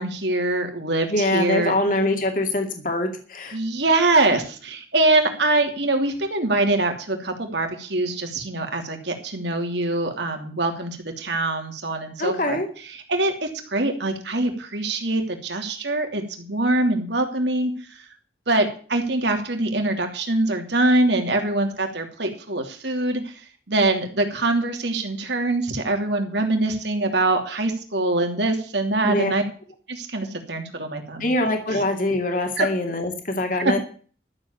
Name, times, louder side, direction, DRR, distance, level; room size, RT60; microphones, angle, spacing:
voice 1, 0.0-1.7 3.5-12.6 12.9-18.1 18.5-29.4 29.9-31.3 31.7-31.8 32.6-32.7 33.6-33.8, right 2 dB, 70° right, 4 dB, 2.9 m, -24 dB
voice 2, 1.1-3.6 12.2-12.7 29.0-29.3 31.2-33.8, left 1 dB, 45° left, 4 dB, 2.5 m, -24 dB
13.0 x 7.7 x 7.0 m, 0.42 s
head